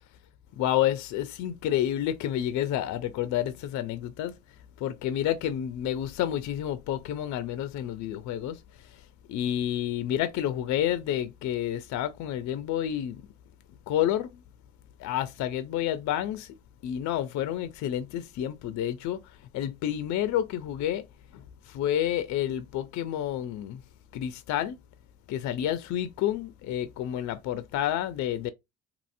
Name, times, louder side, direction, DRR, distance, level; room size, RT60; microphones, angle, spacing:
voice 1, 0.6-4.3 4.8-8.6 8.9-9.0 9.3-13.2 13.9-14.4 15.0-16.5 16.8-19.2 19.5-21.1 21.3-23.8 24.1-24.8 25.3-28.5, left 11 dB, 55° left, 0.4 m, -29 dB
2.8 x 2.6 x 2.5 m
supercardioid pair, 75°, 35 cm